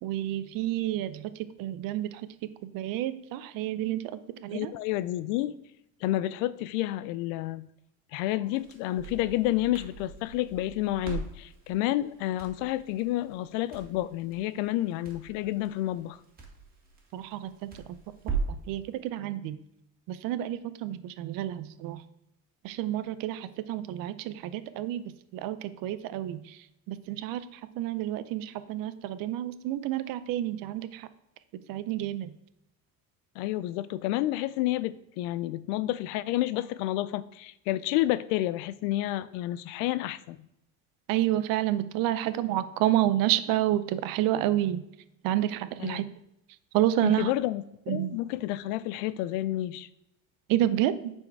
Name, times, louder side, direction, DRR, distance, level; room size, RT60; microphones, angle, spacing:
voice 1, 0.0-2.3 2.6-4.7 17.1-18.0 18.2-19.6 20.1-22.0 22.6-25.0 25.3-31.1 31.7-32.4 41.1-44.8 45.2-46.1 46.7-47.3 47.9-48.2 50.5-51.1, right 13 dB, 65° right, 13 dB, 0.7 m, -29 dB
voice 2, 4.5-5.6 6.0-7.7 8.1-16.2 33.4-40.4 45.8-46.0 47.0-49.9, left 15 dB, 85° left, 17 dB, 0.5 m, -30 dB
Crackle, 8.5-18.7, right 5 dB, 25° right, 2.0 m, -40 dB
7.2 x 4.5 x 4.6 m, 0.82 s
cardioid pair, 115°, 37 cm